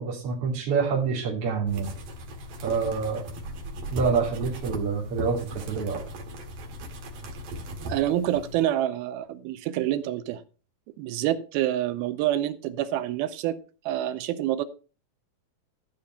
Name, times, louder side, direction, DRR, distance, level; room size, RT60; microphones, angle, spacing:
voice 1, 0.0-1.9 2.6-3.2 3.9-6.0, right 5 dB, 40° right, -4 dB, 3.3 m, -27 dB
sound 1, 1.7-8.6, right 1 dB, 65° right, 3.6 m, -37 dB
voice 2, 7.9-10.4 11.0-13.6 13.9-14.6, right 12 dB, 85° right, 12 dB, 2.6 m, -27 dB
13.5 x 5.1 x 5.7 m, 0.36 s
omnidirectional pair, 4.4 m